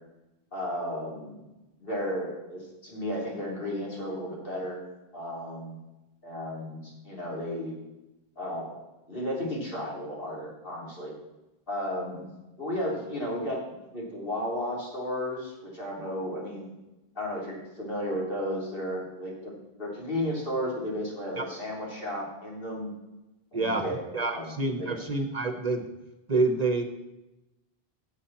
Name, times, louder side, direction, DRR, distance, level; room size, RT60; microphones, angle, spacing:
voice 1, 0.5-1.4 1.8-4.8 5.1-5.8 6.2-7.7 8.4-8.8 9.1-11.1 11.7-12.3 12.6-16.7 17.2-19.5 19.8-22.9 23.5-24.9, equal, 60° left, -4 dB, 4.0 m, -34 dB
voice 2, 23.5-23.9 24.1-25.9 26.3-26.8, right 3 dB, 45° right, 7 dB, 1.0 m, -27 dB
16.0 x 8.2 x 4.3 m, 0.97 s
omnidirectional pair, 1.0 m